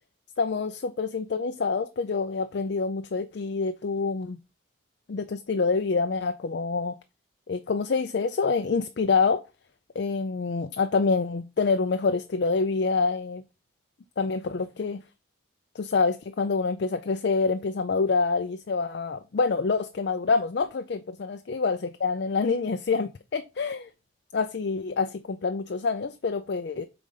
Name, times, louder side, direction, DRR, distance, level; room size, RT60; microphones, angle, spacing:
voice 1, 0.4-4.4 5.1-6.9 7.5-9.4 10.0-13.4 14.2-15.0 15.8-23.9 24.3-26.8, left 4 dB, 55° left, 0.4 m, -26 dB
4.8 x 3.9 x 5.6 m
head